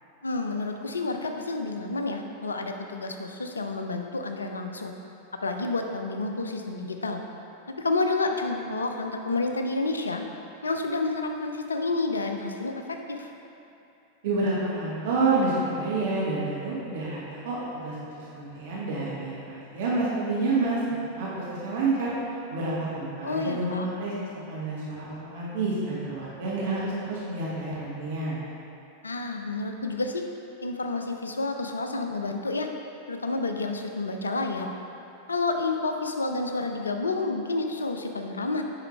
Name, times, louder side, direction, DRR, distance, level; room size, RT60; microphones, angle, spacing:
voice 1, 0.2-4.9 5.3-7.2 7.7-10.2 10.6-13.3 23.2-23.9 29.0-30.2 30.6-32.7 33.1-34.7 35.3-38.6, left 3 dB, 75° left, 4 dB, 0.5 m, -29 dB
voice 2, 14.2-22.1 22.5-28.4, right 3 dB, 55° right, -7 dB, 1.3 m, -29 dB
8.8 x 5.6 x 3.2 m, 2.7 s
figure-of-eight pair, 90°, 0 cm